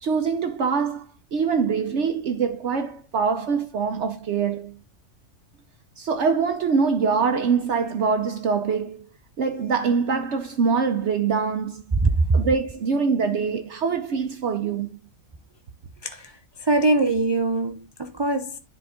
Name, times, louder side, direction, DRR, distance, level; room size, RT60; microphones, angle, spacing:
voice 1, 0.0-4.8 6.0-9.1 9.4-11.8 12.3-15.0, right 5 dB, 65° right, 1.1 m, -24 dB
voice 2, 12.0-12.4 16.0-16.3 16.6-18.6, right 2 dB, 35° right, 0.4 m, -22 dB
10.0 x 4.1 x 3.6 m
omnidirectional pair, 1.3 m